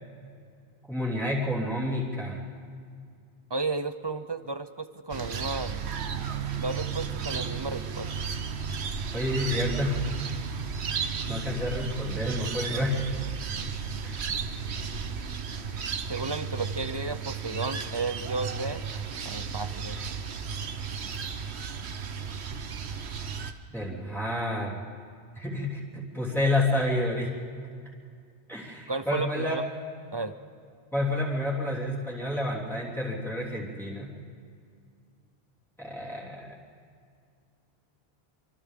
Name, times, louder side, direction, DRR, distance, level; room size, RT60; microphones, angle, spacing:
voice 1, 0.9-2.4 9.1-10.0 11.3-13.0 14.0-14.3 23.7-24.8 25.3-27.3 28.5-29.6 30.9-34.1 35.8-36.5, left 1 dB, ahead, -5 dB, 3.3 m, -29 dB
voice 2, 3.5-5.7 6.6-8.1 16.1-18.9 19.2-20.0 28.9-29.6 30.1-30.3, right 3 dB, 30° right, 11 dB, 0.6 m, -33 dB
sound 1, 5.1-23.5, right 6 dB, 85° right, 1.2 m, -34 dB
28.5 x 25.0 x 3.7 m, 2.3 s
omnidirectional pair, 1.1 m